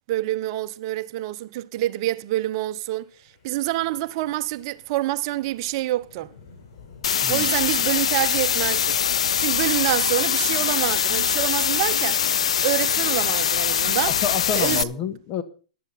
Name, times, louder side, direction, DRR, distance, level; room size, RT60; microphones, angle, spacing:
voice 1, 0.1-3.1 3.4-6.3 7.3-9.0 9.4-12.2 12.6-14.2 14.5-14.9, right 16 dB, 50° right, 0.7 m, -26 dB
Wind, 3.0-13.3, left 5 dB, 60° left, 4.1 m, -51 dB
sound 1, 7.0-14.8, left 8 dB, 80° left, 0.5 m, -22 dB
voice 2, 14.2-15.4, left 7 dB, 35° left, 1.7 m, -28 dB
15.5 x 11.0 x 4.1 m
hypercardioid pair, 120°, 3 cm